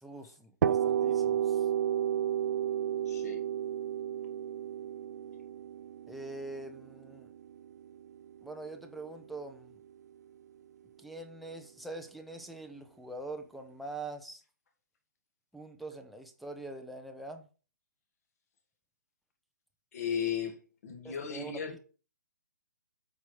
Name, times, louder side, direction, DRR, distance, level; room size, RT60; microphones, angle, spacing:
voice 1, 0.0-1.7 6.1-7.3 8.4-9.8 11.0-14.4 15.5-17.5 21.0-21.8, right 2 dB, ahead, 0.7 m, -44 dB
sound 1, 0.6-8.3, right 10 dB, 55° right, 0.6 m, -32 dB
voice 2, 3.1-3.4 19.9-20.5 20.8-21.8, left 7 dB, 50° left, 2.7 m, -35 dB
8.1 x 5.0 x 4.8 m
hypercardioid pair, 145°, 11 cm